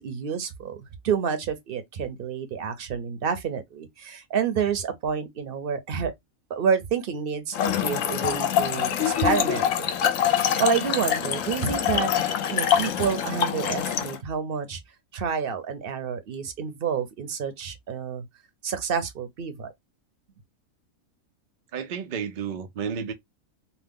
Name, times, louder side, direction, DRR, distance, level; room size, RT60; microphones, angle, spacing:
voice 1, 0.0-6.1 6.5-9.9 10.4-12.1 12.5-14.8 15.1-18.2 18.6-19.7, right 7 dB, 55° right, 0.7 m, -29 dB
Trickle dribble / Fill (with liquid), 7.5-14.2, left 9 dB, 70° left, 0.9 m, -25 dB
voice 2, 21.7-23.1, right 7 dB, 85° right, 0.4 m, -31 dB
2.8 x 2.2 x 3.5 m
omnidirectional pair, 1.5 m